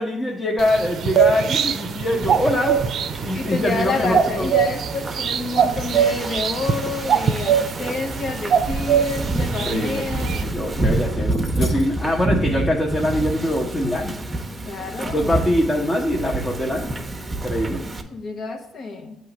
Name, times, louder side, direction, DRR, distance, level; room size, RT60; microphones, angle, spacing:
voice 1, 0.0-2.8 3.2-4.5 9.5-14.2 15.1-16.9 17.3-17.8, left 1 dB, 25° left, -1 dB, 0.9 m, -23 dB
sound 1, 0.6-10.4, right 8 dB, 65° right, 0.4 m, -23 dB
Wind / Ocean, 2.2-18.0, right 2 dB, 20° right, 0.7 m, -28 dB
voice 2, 3.3-10.4 14.7-15.5 18.1-19.2, left 3 dB, 60° left, 3 dB, 0.8 m, -29 dB
sound 2, 11.3-11.9 13.9-14.0 14.2-15.9, left 2 dB, 80° left, 1.7 m, -43 dB
7.7 x 3.1 x 6.0 m, 0.88 s
cardioid pair, 90°, 0 cm